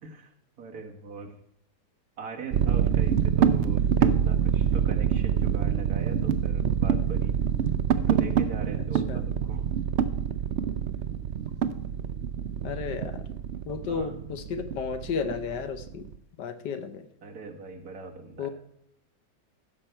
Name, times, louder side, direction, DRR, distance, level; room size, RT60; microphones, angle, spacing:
voice 1, 0.6-1.4 2.2-7.4 8.0-9.7 13.9-14.1 17.2-18.5, right 4 dB, 55° right, 2 dB, 1.9 m, -41 dB
sound 1, 2.5-16.1, right 8 dB, 85° right, 0.6 m, -26 dB
voice 2, 12.6-13.2 13.6-16.1 16.4-17.1 18.4-18.5, left 6 dB, 75° left, 9 dB, 1.5 m, -33 dB
15.0 x 6.7 x 4.5 m, 0.71 s
omnidirectional pair, 1.9 m